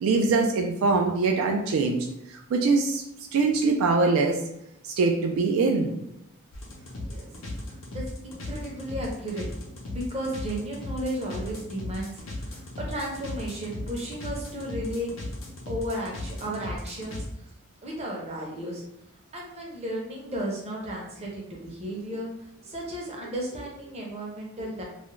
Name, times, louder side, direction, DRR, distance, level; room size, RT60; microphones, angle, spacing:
voice 1, 0.0-3.0 3.3-4.4 4.8-5.9, right 3 dB, 70° right, 3 dB, 0.3 m, -23 dB
sound 1, 6.5-17.3, left 1 dB, 65° left, 0.6 m, -37 dB
voice 2, 6.9-7.3 7.6-9.4 9.9-15.1 15.7-17.5 17.8-18.8 19.3-24.8, right 1 dB, 30° right, -2 dB, 0.6 m, -34 dB
2.4 x 2.1 x 3.0 m, 0.83 s
head